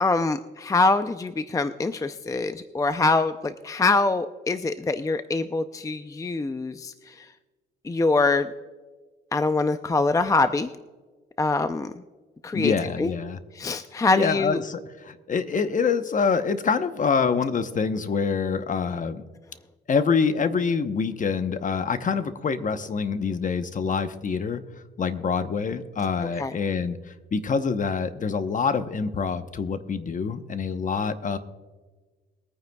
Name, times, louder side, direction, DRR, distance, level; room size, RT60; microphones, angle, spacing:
voice 1, 0.0-7.1 7.8-8.5 9.3-10.7 11.4-11.9 12.4-12.7 13.0-13.1 13.6-14.6 26.4-26.6, left 3 dB, 15° left, 10 dB, 0.5 m, -24 dB
voice 2, 12.5-13.4 14.1-19.2 19.9-24.6 25.0-27.0 27.3-31.4, left 5 dB, 40° left, 10 dB, 0.9 m, -26 dB
22.0 x 9.4 x 2.3 m, 1.3 s
cardioid pair, 90°, 20 cm